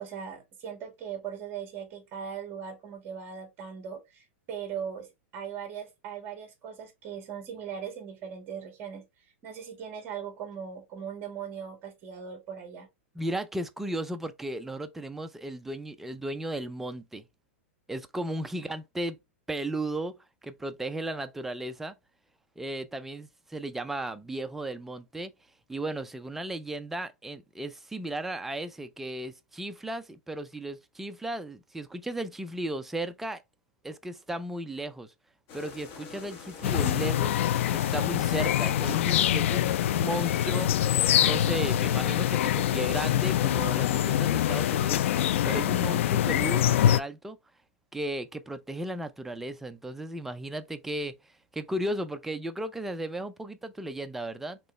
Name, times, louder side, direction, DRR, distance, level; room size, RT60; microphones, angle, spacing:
voice 1, 0.0-9.1 9.4-12.9, right 7 dB, 30° right, 1.7 m, -39 dB
voice 2, 13.2-17.3 17.9-19.2 19.5-22.0 22.6-25.3 25.7-33.4 33.8-35.1 35.5-47.4 47.9-51.1 51.5-54.6, right 1 dB, 5° right, 0.3 m, -35 dB
sound 1, 35.5-45.7, left 5 dB, 35° left, 1.2 m, -44 dB
sound 2, 36.6-47.0, left 11 dB, 70° left, 0.3 m, -25 dB
4.4 x 3.0 x 3.0 m
supercardioid pair, 155°, 7 cm